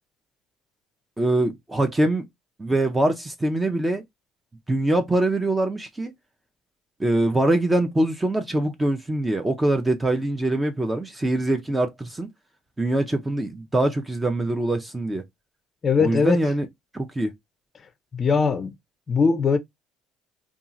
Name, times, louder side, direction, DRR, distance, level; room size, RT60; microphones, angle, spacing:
voice 1, 1.2-2.2 2.6-4.0 4.7-6.1 7.0-12.3 12.8-15.2 16.0-16.7 16.9-17.3, right 1 dB, 15° right, 0.5 m, -23 dB
voice 2, 15.8-16.4 18.1-18.7 19.1-19.6, left 5 dB, 35° left, 0.4 m, -20 dB
2.7 x 2.4 x 2.5 m
supercardioid pair, 80°, 0 cm